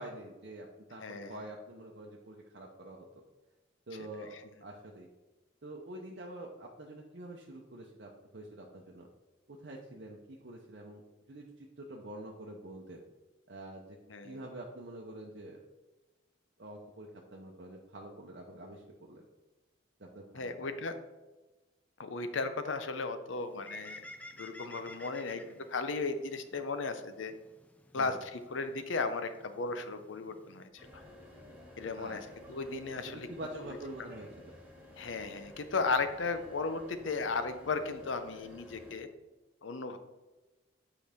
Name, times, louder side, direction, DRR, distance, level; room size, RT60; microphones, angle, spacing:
voice 1, 0.0-3.2 3.9-4.3 4.6-5.1 5.6-9.1 9.5-11.0 11.3-13.0 13.5-14.0 14.2-15.6 16.6-19.2 20.0-20.7 27.9-28.2 31.9-32.4 32.9-34.6, right 1 dB, 60° right, -1 dB, 0.7 m, -46 dB
voice 2, 1.0-1.3 14.1-14.4 20.3-21.0 22.0-24.0 24.4-27.3 27.9-31.0 31.8-33.3 35.0-39.1 39.6-40.0, left 3 dB, 85° left, 9 dB, 0.7 m, -35 dB
Bird, 23.4-30.7, left 1 dB, 5° left, 0.3 m, -53 dB
sound 1, 30.8-38.9, left 1 dB, 10° right, 2.2 m, -53 dB
8.9 x 4.9 x 3.5 m, 1.1 s
head